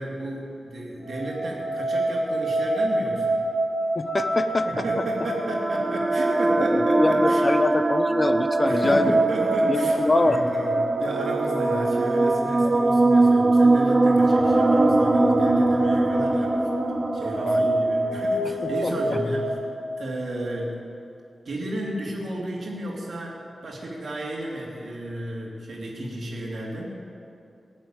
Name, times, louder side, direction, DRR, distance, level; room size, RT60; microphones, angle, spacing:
voice 1, 0.0-3.4 4.6-7.4 8.6-16.7 17.1-19.6 20.0-20.8 21.4-27.0, right 1 dB, 60° right, -3 dB, 2.8 m, -32 dB
sound 1, 1.0-19.5, right 1 dB, 65° left, 2.5 m, -27 dB
voice 2, 3.9-4.8 6.6-9.1 9.7-10.4 12.6-12.7 17.4-17.7 18.6-19.2, left 2 dB, 25° left, 10 dB, 0.6 m, -25 dB
sound 2, 4.6-18.7, right 2 dB, 25° right, 0.4 m, -23 dB
18.5 x 7.3 x 8.9 m, 2.6 s
wide cardioid pair, 145°, 0 cm